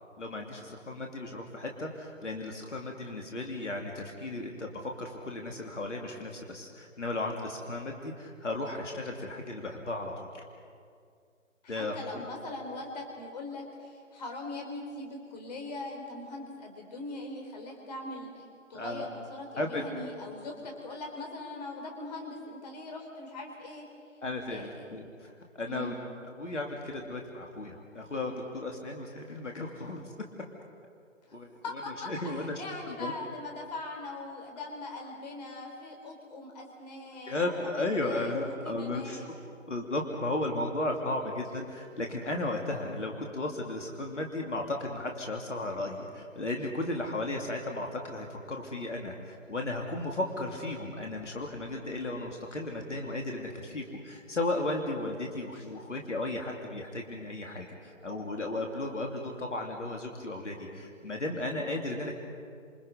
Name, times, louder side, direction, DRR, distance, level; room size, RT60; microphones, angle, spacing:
voice 1, 0.2-10.4 11.7-12.3 18.7-19.1 19.6-19.8 24.2-25.9 26.2-30.1 31.3-31.5 32.1-32.6 32.9-33.1 37.3-39.3 39.7-62.1, left 2 dB, 65° left, 1 dB, 3.1 m, -35 dB
voice 2, 11.6-23.8 24.5-24.9 25.7-26.0 31.2-31.4 31.6-39.3, left 2 dB, 30° left, 2 dB, 4.4 m, -41 dB
28.5 x 27.5 x 5.4 m, 2.3 s
figure-of-eight pair, 145°, 38 cm